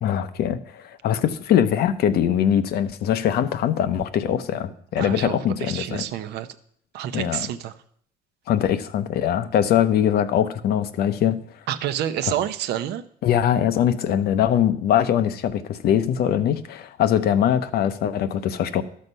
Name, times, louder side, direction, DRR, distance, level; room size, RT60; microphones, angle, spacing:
voice 1, 0.0-6.0 7.1-7.5 8.5-11.4 13.2-18.8, left 9 dB, 70° left, 11 dB, 0.8 m, -22 dB
voice 2, 5.0-6.5 6.9-7.7 11.7-13.0, right 11 dB, 80° right, 11 dB, 0.7 m, -28 dB
12.0 x 6.5 x 5.4 m, 0.64 s
cardioid pair, 110°, 17 cm